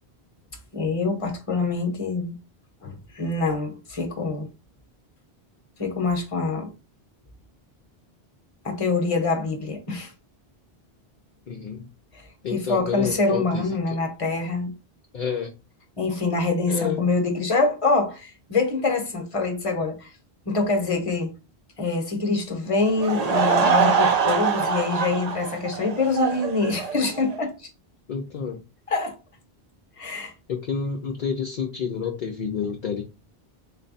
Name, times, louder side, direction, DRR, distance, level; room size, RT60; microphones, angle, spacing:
voice 1, 0.7-2.4 2.8-4.5 5.8-6.7 8.6-10.1 12.5-14.7 16.0-20.1 20.5-21.3 21.8-27.7 28.9-29.2 30.0-30.3, left 3 dB, 35° left, 1.0 m, -25 dB
voice 2, 11.5-11.9 12.4-14.0 15.1-15.5 16.7-17.0 28.1-28.6 30.5-33.0, left 6 dB, 55° left, 0.7 m, -29 dB
Laughter / Crowd, 22.9-27.4, right 6 dB, 45° right, 0.7 m, -23 dB
4.0 x 2.2 x 3.9 m
omnidirectional pair, 1.0 m